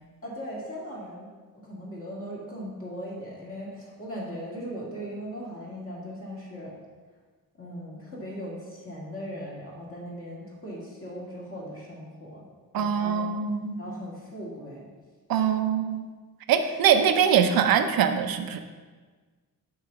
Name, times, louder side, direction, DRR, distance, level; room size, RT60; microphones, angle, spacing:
voice 1, 0.2-6.7 7.6-12.5 12.8-13.2 13.8-14.9 15.3-15.4 16.6-16.7 17.0-17.1, equal, 40° left, -4 dB, 2.0 m, -39 dB
voice 2, 12.7-13.8 15.3-16.0 16.5-18.6, right 8 dB, 85° right, 8 dB, 0.6 m, -23 dB
6.5 x 3.9 x 5.9 m, 1.4 s
wide cardioid pair, 150°, 34 cm